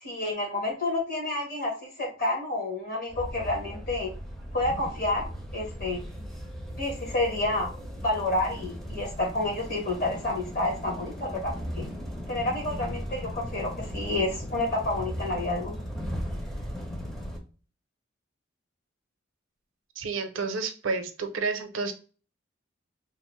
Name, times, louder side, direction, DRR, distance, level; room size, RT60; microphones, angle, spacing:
voice 1, 0.0-4.1 4.5-5.2 5.5-6.0 6.8-7.7 8.0-11.9 12.3-15.8, left 2 dB, 50° left, -1 dB, 1.0 m, -29 dB
sound 1, 3.1-17.4, equal, ahead, 0.5 m, -37 dB
voice 2, 20.0-21.9, right 4 dB, 85° right, 6 dB, 0.5 m, -30 dB
2.8 x 2.0 x 2.9 m, 0.37 s
head